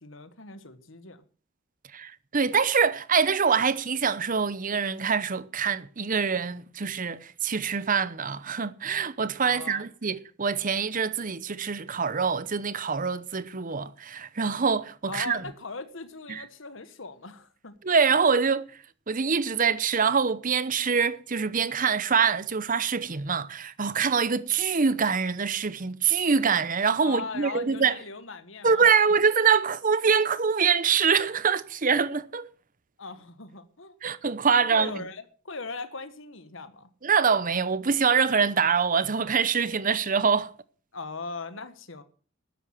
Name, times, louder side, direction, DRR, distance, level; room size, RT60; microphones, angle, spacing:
voice 1, 0.0-1.2 9.4-9.9 15.1-17.7 27.0-28.8 33.0-33.9 34.5-36.9 40.9-42.0, left 4 dB, 70° left, 1.5 m, -39 dB
voice 2, 1.9-15.4 16.3-16.4 17.8-18.7 19.1-28.0 28.6-32.5 34.0-34.9 37.0-40.5, right 6 dB, 45° right, 0.8 m, -24 dB
13.0 x 10.0 x 7.4 m
head